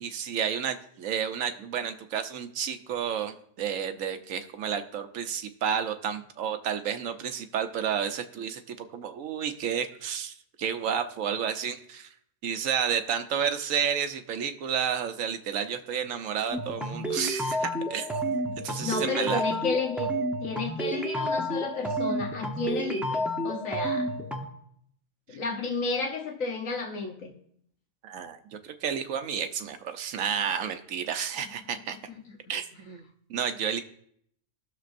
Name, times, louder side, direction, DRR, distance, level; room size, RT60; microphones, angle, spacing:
voice 1, 0.0-12.1 12.4-18.1 18.6-19.4 25.3-25.4 28.0-28.4 28.6-32.0 32.5-33.0 33.3-33.8, right 8 dB, 80° right, 8 dB, 1.1 m, -31 dB
sound 1, 16.5-24.5, equal, ahead, 0.7 m, -30 dB
voice 2, 18.8-20.1 20.4-24.1 25.3-27.3 32.3-32.4, left 4 dB, 80° left, 2 dB, 1.4 m, -32 dB
19.0 x 6.6 x 2.6 m, 0.68 s
omnidirectional pair, 1.4 m